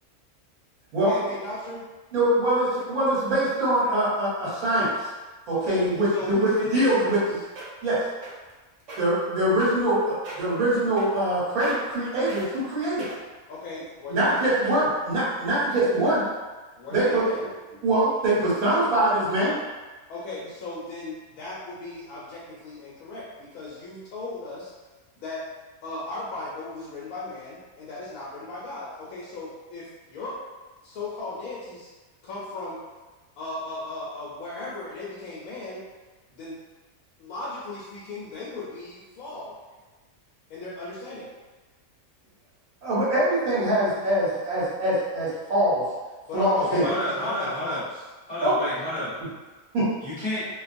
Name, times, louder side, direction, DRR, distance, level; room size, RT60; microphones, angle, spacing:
voice 1, 1.0-1.9 5.5-5.8 6.1-7.2 13.5-14.5 16.8-17.5 20.1-24.7 25.2-25.4 25.8-30.3 30.8-31.9 32.2-32.8 33.4-35.8 36.3-36.6 37.2-39.5 40.5-41.3 46.3-48.0, left 2 dB, 75° left, -7 dB, 1.0 m, -37 dB
voice 2, 2.1-4.9 5.5-7.2 7.8-8.0 9.0-13.1 14.1-16.2 16.9-17.2 17.8-19.5 42.8-45.9 46.3-46.9 48.4-48.6 49.2-49.3 49.7-49.9, right 1 dB, 80° right, -9 dB, 1.3 m, -23 dB
sound 1, 7.6-7.9 8.2-8.5 8.8-9.0 9.6-9.9 10.2-10.5 11.0-11.3 11.6-12.0 12.3-12.5 13.0-13.4 14.0-14.1, right 2 dB, 60° right, 1.0 m, -39 dB
voice 3, 46.8-47.8 48.3-49.1 50.0-50.5, left 1 dB, 35° left, -13 dB, 0.9 m, -30 dB
2.5 x 2.2 x 2.5 m, 1.3 s
omnidirectional pair, 1.5 m